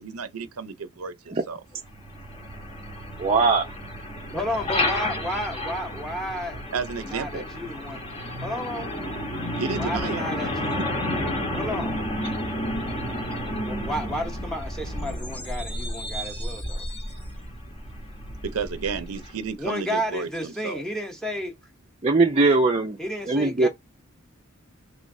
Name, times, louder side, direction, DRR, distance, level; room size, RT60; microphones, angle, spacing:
voice 1, 0.0-1.6 6.7-7.5 9.6-10.2 18.4-20.8, right 5 dB, 90° right, 0.6 m, -32 dB
Truck, 1.8-19.5, left 1 dB, 25° left, 1.0 m, -31 dB
voice 2, 3.2-3.6 22.0-23.0 23.3-23.7, right 3 dB, 30° right, 0.5 m, -20 dB
voice 3, 4.3-6.6 7.0-8.0 8.4-9.0 9.7-10.8 11.5-12.0 13.6-16.8 19.6-21.5 23.0-23.7, equal, 5° left, 0.9 m, -32 dB
3.2 x 3.0 x 2.6 m
head